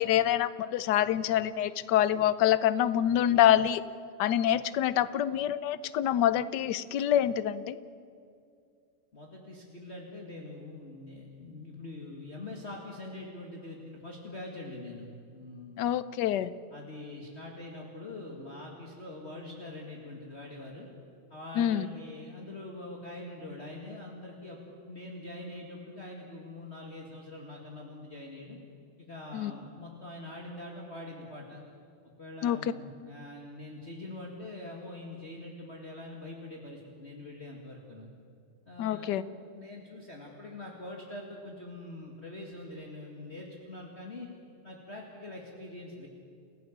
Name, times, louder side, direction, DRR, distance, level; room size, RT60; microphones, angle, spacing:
voice 1, 0.0-3.8 4.2-7.8 15.8-16.5 21.6-21.9 29.3-29.5 32.4-32.7 38.8-39.2, left 11 dB, 65° left, 16 dB, 1.2 m, -26 dB
voice 2, 9.1-15.9 16.7-20.9 21.3-28.6 29.0-31.6 32.2-38.1 38.7-39.2 39.5-44.3 44.6-46.1, left 2 dB, 30° left, -1 dB, 2.3 m, -44 dB
29.0 x 15.5 x 7.4 m, 2.4 s
omnidirectional pair, 2.3 m